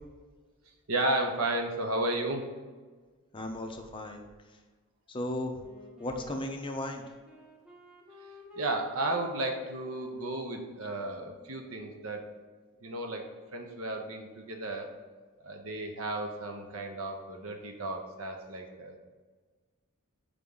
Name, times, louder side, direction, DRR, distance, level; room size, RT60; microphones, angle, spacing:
voice 1, 0.9-2.4 8.6-12.3 12.8-14.9 15.4-19.0, right 2 dB, 70° right, 3 dB, 0.9 m, -33 dB
voice 2, 3.3-4.2 5.1-5.6 6.0-7.0, left 1 dB, 20° left, 4 dB, 0.5 m, -35 dB
Wind instrument woodwind instrument, 5.5-12.2, left 1 dB, 5° right, 0.9 m, -53 dB
5.0 x 3.6 x 5.5 m, 1.4 s
head